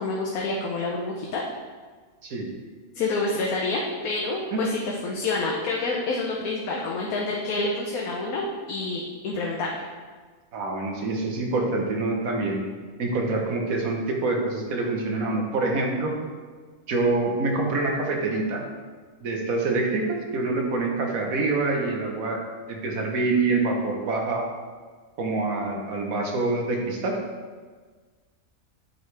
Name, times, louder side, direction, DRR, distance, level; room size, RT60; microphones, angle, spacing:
voice 1, 0.0-1.4 2.9-9.8, left 3 dB, 85° left, -2 dB, 1.2 m, -28 dB
voice 2, 10.5-12.6 13.0-16.2 16.9-18.6 19.2-22.4 22.7-24.5 25.2-27.2, right 3 dB, 80° right, 1 dB, 1.5 m, -26 dB
8.5 x 5.1 x 3.3 m, 1.5 s
omnidirectional pair, 1.5 m